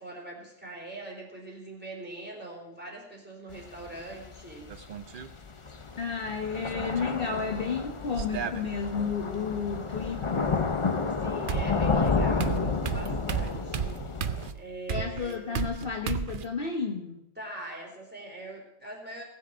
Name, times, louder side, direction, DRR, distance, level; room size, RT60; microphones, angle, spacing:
voice 1, 0.0-4.7 11.2-13.9 14.2-15.6 17.4-19.2, right 1 dB, 10° right, -2 dB, 3.6 m, -42 dB
Thunder / Rain, 3.5-14.5, left 4 dB, 30° left, 0.7 m, -31 dB
sound 1, 4.7-5.3 6.6-7.2 8.2-9.2 10.9-11.0 11.5-16.5, right 7 dB, 50° right, 0.7 m, -34 dB
voice 2, 5.9-10.6 14.9-17.2, left 5 dB, 50° left, 2 dB, 1.2 m, -32 dB
18.5 x 7.7 x 6.1 m, 0.85 s
omnidirectional pair, 1.2 m